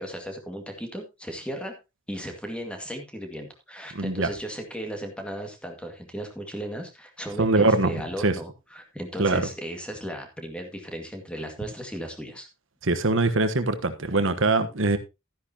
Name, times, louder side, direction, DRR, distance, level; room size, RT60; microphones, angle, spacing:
voice 1, 0.0-1.8 2.1-12.5, equal, 5° left, 4 dB, 2.0 m, -36 dB
voice 2, 3.9-4.3 7.4-8.0 8.2-8.3 9.2-9.5 12.8-15.0, right 2 dB, 65° right, 10 dB, 1.2 m, -22 dB
13.0 x 10.0 x 2.9 m, 0.24 s
head